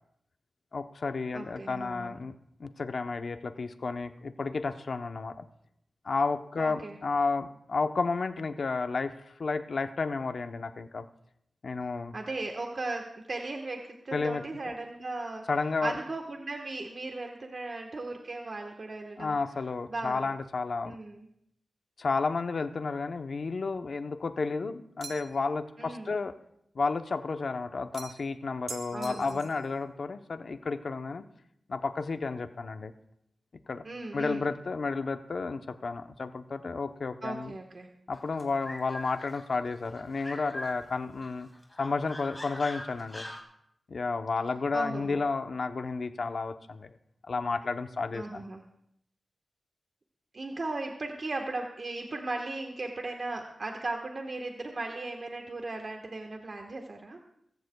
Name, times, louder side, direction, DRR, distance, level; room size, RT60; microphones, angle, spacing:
voice 1, 0.7-5.4 6.0-11.0 11.6-12.1 14.1-14.4 15.5-16.0 19.2-21.0 22.0-26.3 26.7-31.2 31.7-32.9 33.7-33.8 34.1-37.6 38.1-41.5 41.8-43.2 43.9-46.9 47.3-48.4, left 4 dB, 60° left, 8 dB, 0.8 m, -32 dB
voice 2, 1.3-2.1 6.6-7.0 12.1-15.4 15.8-19.4 19.9-20.3 20.8-21.3 25.8-26.1 28.9-29.4 33.8-34.5 37.2-37.9 44.7-45.2 48.1-48.6 50.3-57.2, right 2 dB, 50° right, 2 dB, 1.3 m, -37 dB
sound 1, 25.0-25.5 27.9-28.3 28.7-29.6, right 5 dB, 70° right, 0.6 m, -44 dB
sound 2, 38.1-40.8 41.2-43.4, left 1 dB, 15° left, 3.2 m, -42 dB
23.0 x 14.5 x 2.3 m, 0.74 s
wide cardioid pair, 95°, 0 cm